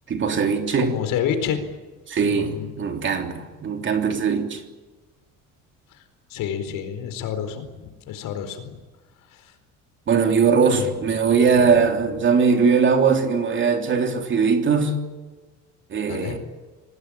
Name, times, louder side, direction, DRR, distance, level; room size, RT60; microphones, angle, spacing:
voice 1, 0.1-0.9 2.1-4.6 10.1-15.0 15.9-16.4, right 5 dB, 35° right, 4 dB, 3.3 m, -20 dB
voice 2, 0.8-1.8 2.2-2.7 5.9-6.0 6.3-8.8 9.3-9.5 10.5-10.9 11.5-11.9 16.1-16.4, left 8 dB, 75° left, 9 dB, 4.4 m, -29 dB
26.0 x 19.0 x 8.9 m, 1.3 s
cardioid pair, 165°, 33 cm